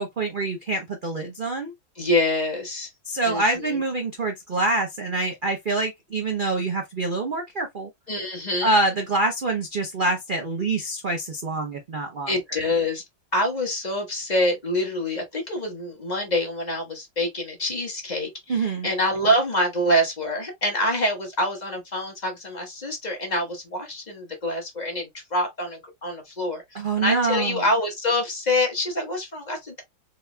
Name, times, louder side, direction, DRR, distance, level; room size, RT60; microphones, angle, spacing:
voice 1, 0.0-1.7 3.0-7.9 8.6-12.3 18.5-18.9 26.7-27.6, right 2 dB, 90° right, 0.4 m, -25 dB
voice 2, 2.0-2.9 3.2-3.8 8.1-8.7 12.3-13.0 13.3-29.8, left 1 dB, 25° left, 1.0 m, -26 dB
4.1 x 3.7 x 2.2 m
omnidirectional pair, 2.2 m